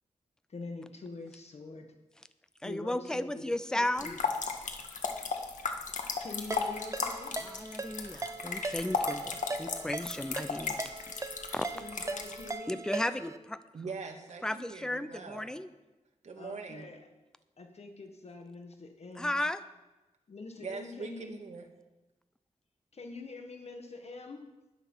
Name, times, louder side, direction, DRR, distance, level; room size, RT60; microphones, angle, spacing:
voice 1, 0.5-1.9 2.6-3.4 3.8-4.2 6.2-7.4 11.7-12.8 16.4-17.0 17.6-19.4 20.3-21.3 22.9-24.5, left 3 dB, 55° left, 4 dB, 1.7 m, -45 dB
voice 2, 2.6-4.2 7.4-11.0 11.5-11.6 12.7-13.6 14.4-15.7 19.2-19.6, left 1 dB, 5° left, 12 dB, 0.6 m, -34 dB
sound 1, 4.0-12.5, left 5 dB, 90° left, 1.6 m, -35 dB
Ringtone, 6.5-13.4, right 3 dB, 25° right, 0.8 m, -40 dB
voice 3, 13.7-15.5 16.2-16.9 20.6-21.7, right 4 dB, 65° right, 4 dB, 1.9 m, -42 dB
13.0 x 10.5 x 5.6 m, 1.1 s
wide cardioid pair, 105°, 13 cm